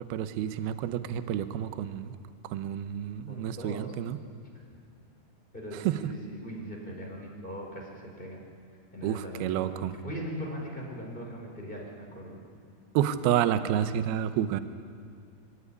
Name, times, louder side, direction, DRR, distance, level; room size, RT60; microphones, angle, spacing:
voice 1, 0.0-2.1 2.5-4.2 5.9-6.0 9.0-9.9 13.0-14.6, right 10 dB, 80° right, 11 dB, 2.3 m, -29 dB
voice 2, 2.9-3.9 4.5-4.6 5.5-8.4 8.9-12.4, equal, 10° left, -1 dB, 3.8 m, -40 dB
24.5 x 17.0 x 9.8 m, 2.2 s
omnidirectional pair, 5.4 m